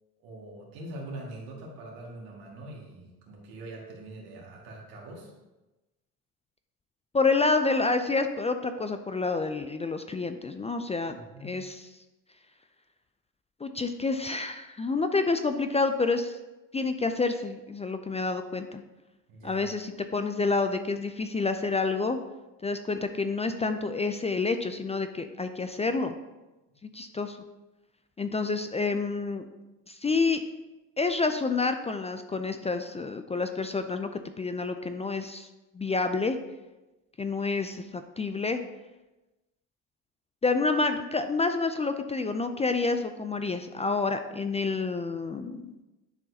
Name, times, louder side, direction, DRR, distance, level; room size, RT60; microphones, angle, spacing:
voice 1, 0.2-5.3 11.3-11.6 19.3-19.7, right 1 dB, 75° right, -2 dB, 2.0 m, -43 dB
voice 2, 7.1-11.2 11.4-11.8 13.6-16.4 16.7-18.8 19.4-22.2 22.6-26.2 26.8-27.4 28.2-29.4 29.9-30.4 31.0-34.1 34.4-35.5 35.7-36.4 37.2-38.6 40.4-45.7, left 3 dB, 20° left, 8 dB, 0.4 m, -28 dB
10.5 x 4.5 x 2.8 m, 1.1 s
supercardioid pair, 75°, 37 cm